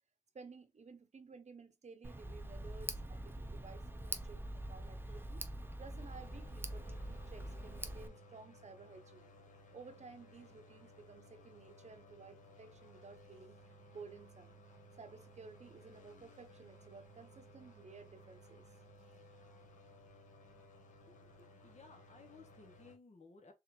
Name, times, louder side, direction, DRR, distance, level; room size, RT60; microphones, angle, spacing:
voice 1, 0.3-5.4 5.8-9.3 9.7-14.5 15.0-18.7, right 4 dB, 60° right, 0.8 m, -55 dB
Tick, 2.0-8.1, right 1 dB, 15° right, 0.7 m, -44 dB
sound 1, 6.0-23.0, equal, 85° left, 1.6 m, -59 dB
voice 2, 21.0-23.5, left 3 dB, 60° left, 1.5 m, -59 dB
3.6 x 3.4 x 3.0 m
cardioid pair, 50°, 13 cm